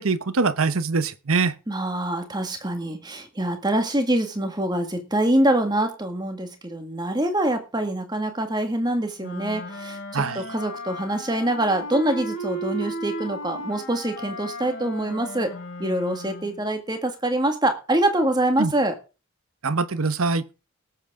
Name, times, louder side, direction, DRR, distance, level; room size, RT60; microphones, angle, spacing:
voice 1, 0.0-1.5 10.1-10.4 18.6-18.7 19.6-20.4, right 4 dB, 75° right, 0.9 m, -23 dB
voice 2, 1.7-15.5 15.8-19.0, right 1 dB, 20° right, 1.8 m, -25 dB
Wind instrument woodwind instrument, 9.2-16.6, equal, 60° left, 4.6 m, -35 dB
19.0 x 8.0 x 3.6 m
head